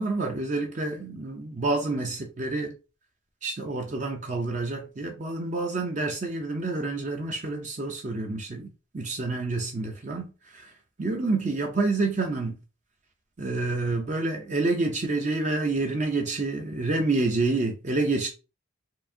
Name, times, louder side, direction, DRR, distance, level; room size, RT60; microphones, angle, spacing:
voice 1, 0.0-2.7 3.4-8.7 8.9-10.7 11.0-12.6 13.4-18.3, right 3 dB, 35° right, 0.5 m, -28 dB
4.5 x 2.6 x 2.7 m
head